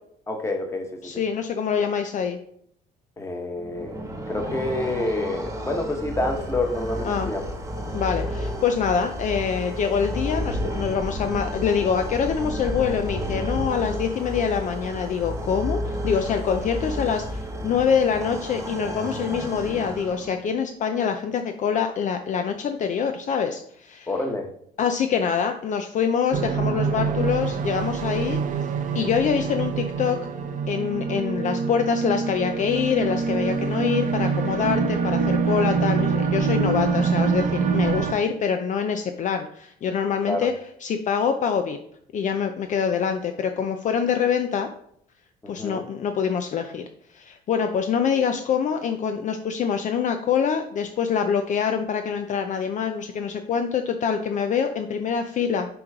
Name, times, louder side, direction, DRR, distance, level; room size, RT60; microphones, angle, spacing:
voice 1, 0.3-0.9 3.2-4.0 4.3-7.4 24.1-24.5 40.3-40.5 45.4-45.8, left 2 dB, 15° left, 2 dB, 1.3 m, -27 dB
voice 2, 1.0-2.4 7.0-7.3 7.9-24.1 24.8-28.4 28.9-30.2 30.7-40.5 40.8-41.8 42.1-44.7 45.5-46.8 47.1-55.7, left 7 dB, 50° left, 6 dB, 0.5 m, -25 dB
sound 1, 3.6-20.5, equal, 20° right, 1.2 m, -31 dB
sound 2, 26.3-38.1, right 5 dB, 50° right, 0.7 m, -25 dB
6.1 x 3.1 x 4.9 m, 0.67 s
cardioid pair, 110°, 17 cm